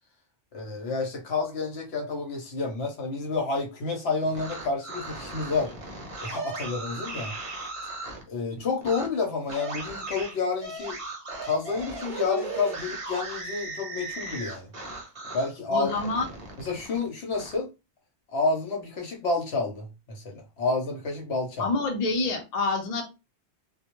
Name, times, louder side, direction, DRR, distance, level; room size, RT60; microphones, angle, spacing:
voice 1, 0.5-5.7 6.2-7.3 8.3-11.0 11.4-14.7 15.3-16.0 16.6-17.7 18.3-21.7, left 4 dB, 70° left, 1.0 m, -29 dB
sound 1, 4.2-8.2 8.8-9.1 9.5-15.5 15.8-17.6, right 3 dB, 35° right, 0.6 m, -37 dB
voice 2, 15.7-16.3 21.6-23.0, left 3 dB, 45° left, 0.6 m, -27 dB
2.2 x 2.0 x 2.9 m
omnidirectional pair, 1.1 m